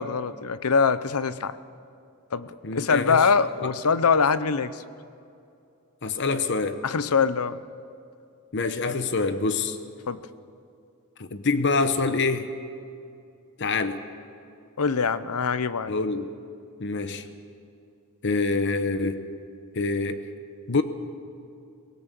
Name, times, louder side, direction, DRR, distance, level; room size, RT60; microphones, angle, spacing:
voice 1, 0.0-1.5 2.3-4.8 6.8-7.6 10.1-10.2 14.8-15.9, left 5 dB, 90° left, 14 dB, 0.8 m, -23 dB
voice 2, 2.6-3.3 3.6-3.7 6.0-6.8 8.5-9.8 11.2-12.5 13.6-14.0 15.9-16.3 16.8-17.3 18.2-19.2 19.7-20.2 20.7-20.8, left 3 dB, 55° left, 10 dB, 1.0 m, -26 dB
23.0 x 18.5 x 6.9 m, 2.5 s
head